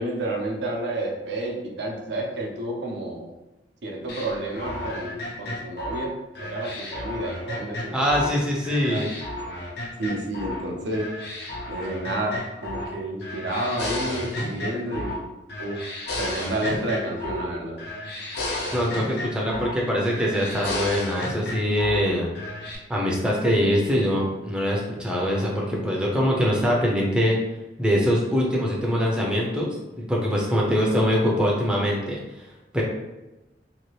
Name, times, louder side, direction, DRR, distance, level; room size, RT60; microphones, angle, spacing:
voice 1, 0.0-3.3 3.8-6.1 6.4-8.3 8.9-9.0 10.0-11.1 11.7-15.2 15.6-15.9 16.2-17.8, right 1 dB, 75° right, -1 dB, 0.6 m, -30 dB
sound 1, 4.1-8.4 8.6-10.6 10.9-12.9 13.2-15.2 15.5-17.5 17.8-19.8 20.1-22.0 22.3-22.8, left 1 dB, 65° left, 0.6 m, -33 dB
voice 2, 7.9-9.1 18.7-22.3 22.9-27.4 27.8-32.2 32.7-32.8, equal, 5° right, -3 dB, 0.5 m, -23 dB
2.7 x 2.4 x 3.1 m, 1.0 s
head